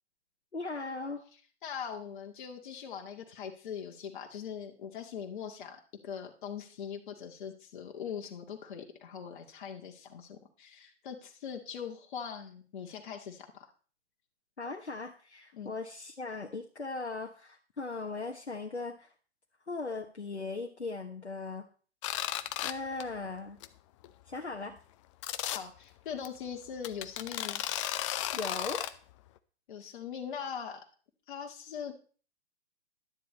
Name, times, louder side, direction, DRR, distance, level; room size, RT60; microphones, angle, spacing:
voice 1, 0.5-1.2 14.6-19.1 19.7-21.7 22.6-23.6 24.3-24.8 28.3-28.9, left 3 dB, 85° left, 2 dB, 1.3 m, -38 dB
voice 2, 1.6-13.7 15.5-15.7 25.5-27.6 29.7-30.8 31.3-31.9, left 7 dB, 50° left, 1 dB, 2.1 m, -41 dB
sound 1, 22.0-22.7 23.0-23.3 23.6-23.7 24.0-24.1 25.2-25.6 26.2-26.3 26.8-28.9, left 13 dB, 30° left, 0.7 m, -34 dB
11.5 x 10.5 x 4.2 m, 0.40 s
figure-of-eight pair, 115°, 33 cm